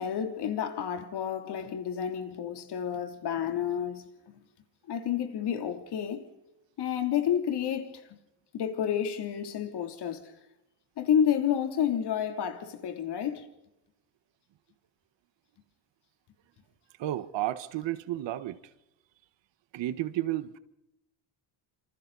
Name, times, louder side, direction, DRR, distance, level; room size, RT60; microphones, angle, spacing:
voice 1, 0.0-4.4 4.9-6.3 6.8-8.2 8.5-10.3 11.0-13.5, left 9 dB, 55° left, 3.4 m, -30 dB
voice 2, 17.0-18.6 19.7-20.6, right 14 dB, 65° right, 1.6 m, -32 dB
27.5 x 27.0 x 4.2 m
cardioid pair, 125°, 47 cm